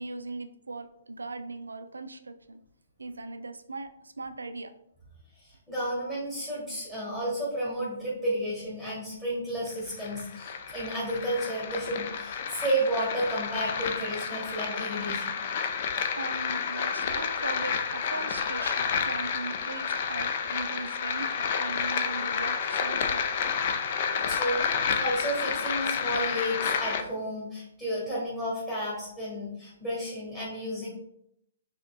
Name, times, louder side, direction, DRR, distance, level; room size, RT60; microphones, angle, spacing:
voice 1, 0.0-2.6 3.0-4.7 16.2-23.3, right 3 dB, 80° right, 9 dB, 0.4 m, -39 dB
voice 2, 5.3-15.4 23.7-24.7 25.0-30.9, right 1 dB, 10° left, -9 dB, 1.4 m, -32 dB
sound 1, 9.7-27.0, left 6 dB, 45° left, 0.4 m, -30 dB
4.9 x 2.9 x 2.2 m, 0.76 s
figure-of-eight pair, 130°, 0 cm